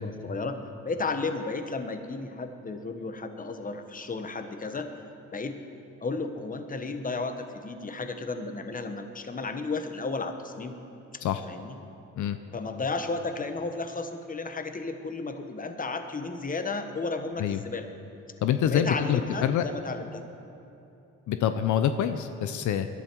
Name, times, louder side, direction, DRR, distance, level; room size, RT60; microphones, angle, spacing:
voice 1, 0.0-4.9 5.3-5.6 6.0-10.7 11.1-11.2 11.5-11.8 12.5-17.9 18.6-20.2, left 3 dB, 25° left, 7 dB, 1.2 m, -33 dB
voice 2, 18.4-19.6 21.3-22.9, left 9 dB, 75° left, 9 dB, 0.7 m, -26 dB
20.5 x 12.0 x 4.6 m, 2.9 s
cardioid pair, 90°, 30 cm